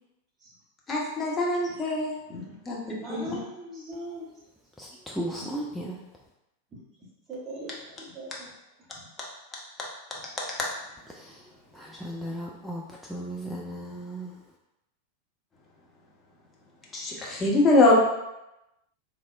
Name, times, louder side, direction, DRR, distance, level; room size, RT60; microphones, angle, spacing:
voice 1, 0.9-2.1 2.7-2.8 3.1-3.2 16.9-18.0, left 2 dB, 20° left, -4 dB, 0.8 m, -22 dB
voice 2, 2.9-4.3 5.4-5.9 6.7-6.8 7.3-8.5 8.9-9.1, equal, 20° right, -6 dB, 1.1 m, -40 dB
voice 3, 4.8-5.9 11.1-11.4 11.7-12.8 13.1-14.3, right 1 dB, ahead, -3 dB, 0.3 m, -35 dB
4.0 x 2.0 x 2.4 m, 0.91 s
figure-of-eight pair, 90°, 0 cm